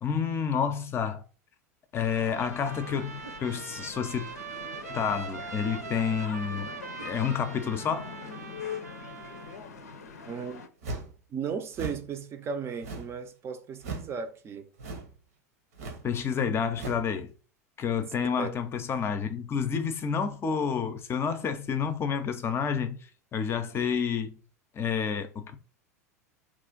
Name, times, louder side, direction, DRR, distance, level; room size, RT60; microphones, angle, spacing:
voice 1, 0.0-1.2 1.9-4.3 4.9-6.7 7.0-8.1 16.0-17.3 17.8-23.1 23.3-24.4 24.7-25.6, left 7 dB, 30° left, 0.6 m, -29 dB
sound 1, 1.9-10.7, left 5 dB, 75° left, 0.5 m, -43 dB
Trumpet, 2.0-9.6, right 6 dB, 85° right, 0.4 m, -42 dB
voice 2, 10.3-10.6 11.3-14.7 18.4-18.5, right 6 dB, 30° right, 0.5 m, -35 dB
sound 2, 10.8-11.2 11.7-12.1 12.8-13.2 13.8-14.1 14.8-15.2 15.7-16.1 16.7-17.1, right 3 dB, 70° right, 0.9 m, -37 dB
3.0 x 2.4 x 3.7 m
figure-of-eight pair, 85°, 9 cm